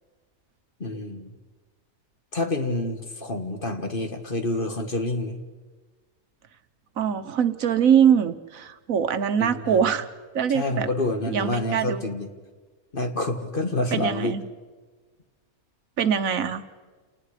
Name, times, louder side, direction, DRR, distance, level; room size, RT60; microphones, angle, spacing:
voice 1, 0.8-1.3 2.3-5.4 9.4-9.8 10.5-12.3 12.9-14.4, left 2 dB, 40° left, 5 dB, 1.8 m, -28 dB
voice 2, 7.0-10.1 10.3-10.9 11.3-12.0 13.9-14.4 16.0-16.6, right 8 dB, 70° right, 10 dB, 1.4 m, -23 dB
30.0 x 19.5 x 5.0 m, 1.4 s
omnidirectional pair, 1.5 m